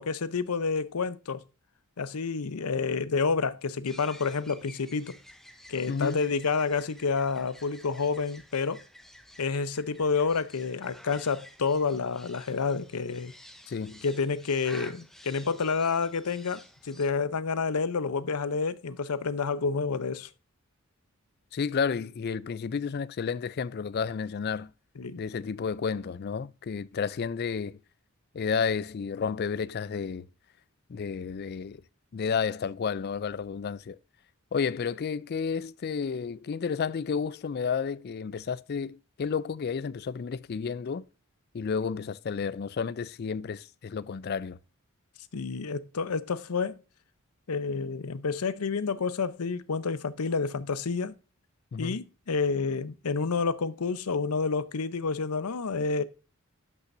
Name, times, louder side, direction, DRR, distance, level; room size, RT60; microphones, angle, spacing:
voice 1, 0.0-1.4 2.0-5.2 5.7-8.8 9.4-13.3 14.0-20.3 25.0-25.2 45.3-46.8 47.5-51.1 51.8-56.0, left 4 dB, 80° left, 0.7 m, -29 dB
sound 1, 3.9-17.1, equal, ahead, 0.7 m, -52 dB
voice 2, 5.9-6.2 13.7-14.0 21.5-24.7 25.2-27.8 28.3-30.3 30.9-31.8 32.1-34.0 34.5-41.0 41.5-44.6 51.7-52.0, left 6 dB, 45° left, 0.3 m, -31 dB
12.0 x 5.7 x 2.6 m
head